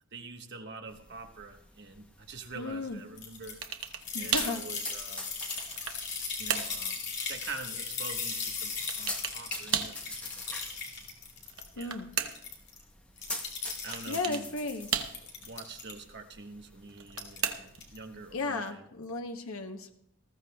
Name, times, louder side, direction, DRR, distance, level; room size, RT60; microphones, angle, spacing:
voice 1, 0.1-3.6 4.2-5.3 6.4-10.8 11.7-11.9 13.8-14.5 15.4-18.8, right 3 dB, 55° right, 5 dB, 1.2 m, -45 dB
sound 1, 0.9-18.3, left 1 dB, 5° left, 0.8 m, -46 dB
voice 2, 2.5-3.0 4.1-4.6 11.8-12.1 14.1-14.9 18.3-19.9, left 3 dB, 85° left, 5 dB, 0.9 m, -35 dB
sound 2, 3.2-11.8 12.1-12.8 13.2-14.2 14.7-15.9 17.1-17.5 17.8-18.0, left 5 dB, 55° left, 2.4 m, -38 dB
sound 3, 3.6-4.1 4.3-4.6 5.2-6.1 6.5-6.8 8.9-9.4 9.7-10.0 11.4-12.5 13.9-14.5 14.9-15.5 16.9-17.9, right 8 dB, 80° right, 1.0 m, -34 dB
19.5 x 14.5 x 2.3 m, 0.73 s
head